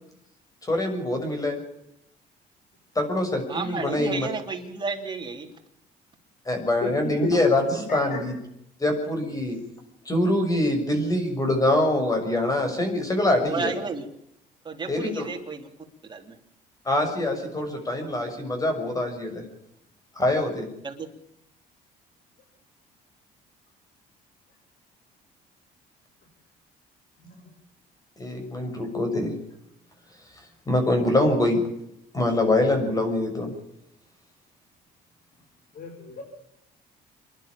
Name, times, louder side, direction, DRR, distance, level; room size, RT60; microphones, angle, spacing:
voice 1, 0.7-1.6 2.9-4.3 6.4-8.3 8.8-9.6 10.0-13.8 14.9-15.3 16.8-19.4 20.2-20.7 28.2-29.3 30.7-31.6 32.1-33.5, left 1 dB, 20° left, 5 dB, 6.6 m, -24 dB
voice 2, 3.5-5.5 13.5-14.1 14.7-15.7 16.1-16.4 20.8-21.1, right 5 dB, 25° right, 3 dB, 3.5 m, -32 dB
voice 3, 35.7-36.2, left 5 dB, 60° left, 0 dB, 6.2 m, -33 dB
27.5 x 11.5 x 8.7 m, 0.79 s
cardioid pair, 110°, 17 cm